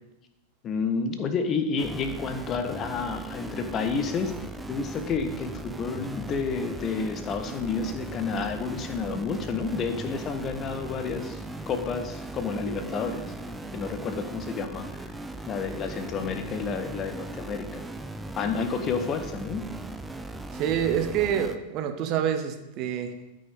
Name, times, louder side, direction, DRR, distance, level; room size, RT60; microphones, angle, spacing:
voice 1, 0.6-4.3 4.7-11.4 11.7-15.1 15.5-17.8 18.4-19.6, left 5 dB, 30° left, 8 dB, 0.8 m, -30 dB
sound 1, 1.8-21.6, right 2 dB, 5° right, 0.5 m, -38 dB
voice 2, 20.5-23.1, right 9 dB, 40° right, 7 dB, 0.8 m, -27 dB
12.5 x 5.4 x 3.6 m, 0.94 s
figure-of-eight pair, 90°, 0 cm